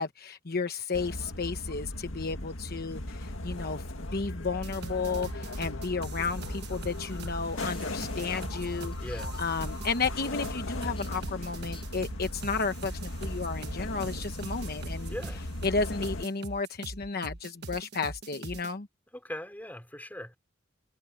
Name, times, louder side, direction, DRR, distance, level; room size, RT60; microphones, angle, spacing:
voice 1, 0.0-9.1 9.4-15.2 15.6-18.9, left 4 dB, 50° left, 1.1 m, -33 dB
sound 1, 0.9-16.3, left 1 dB, 80° left, 2.0 m, -37 dB
sound 2, 4.6-18.7, right 2 dB, 55° right, 1.5 m, -42 dB
sound 3, 7.7-11.9, left 6 dB, 25° left, 6.9 m, -56 dB
voice 2, 9.0-9.4 15.1-15.4 19.1-20.4, left 1 dB, 10° left, 4.6 m, -40 dB
head